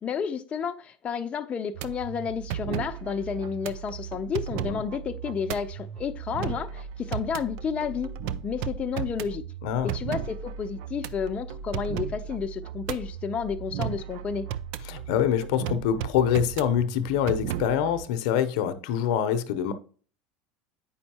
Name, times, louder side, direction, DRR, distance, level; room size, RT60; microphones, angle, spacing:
voice 1, 0.0-8.1 8.4-9.4 9.8-14.5, left 6 dB, 30° left, 0.5 m, -31 dB
sound 1, 1.7-18.1, right 9 dB, 65° right, 0.4 m, -35 dB
voice 2, 9.6-9.9 14.9-19.7, left 9 dB, 70° left, 0.7 m, -25 dB
8.5 x 5.3 x 2.9 m
supercardioid pair, 105°, 4 cm